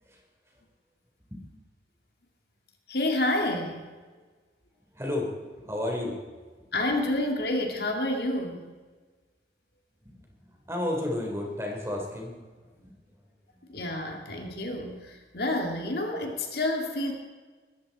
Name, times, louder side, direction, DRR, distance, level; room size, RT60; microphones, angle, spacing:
voice 1, 2.9-3.9 6.7-8.7 13.7-17.1, left 1 dB, 60° left, 2 dB, 2.4 m, -29 dB
voice 2, 4.9-6.2 10.0-12.3 12.6-13.0, left 1 dB, 15° right, 0 dB, 3.8 m, -33 dB
21.0 x 14.5 x 4.3 m, 1.4 s
head